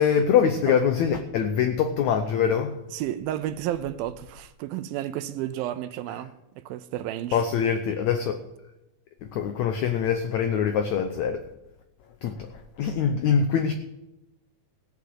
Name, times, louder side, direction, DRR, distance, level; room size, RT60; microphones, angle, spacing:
voice 1, 0.0-2.8 7.3-8.4 9.2-11.4 12.2-12.5 12.8-13.7, left 7 dB, 90° left, 1.6 m, -23 dB
voice 2, 2.9-6.3 6.7-7.4, right 12 dB, 80° right, 2.4 m, -31 dB
16.5 x 7.0 x 7.9 m
omnidirectional pair, 4.4 m